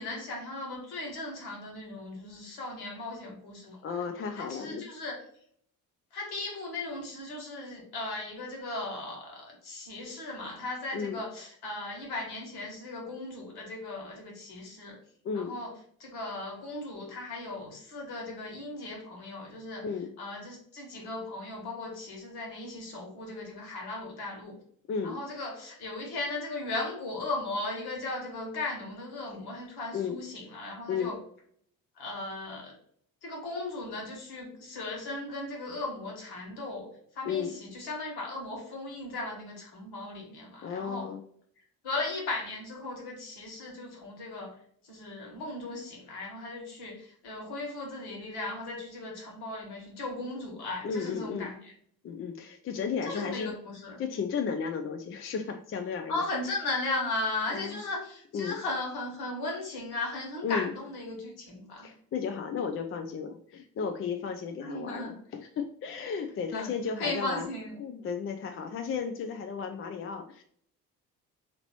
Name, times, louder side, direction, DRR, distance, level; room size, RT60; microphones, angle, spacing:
voice 1, 0.0-3.8 4.3-5.2 6.1-15.0 15.3-15.7 16.0-19.8 20.2-24.6 25.0-31.2 32.0-32.7 33.2-36.9 37.1-41.1 41.8-44.5 44.8-51.7 53.0-54.0 56.1-61.9 64.6-65.1 66.5-66.7 67.0-67.8, left 2 dB, 55° left, 0 dB, 1.7 m, -37 dB
voice 2, 3.8-4.9 10.9-11.2 15.2-15.5 19.8-20.1 24.9-25.2 29.9-30.2 30.9-31.1 37.3-37.5 40.6-41.2 50.8-51.5 52.0-53.5 54.0-56.2 57.5-57.8 58.3-58.6 60.4-60.7 61.8-67.5 67.8-70.4, left 6 dB, 30° left, 6 dB, 0.5 m, -34 dB
3.9 x 2.9 x 4.4 m, 0.63 s
figure-of-eight pair, 45°, 45 cm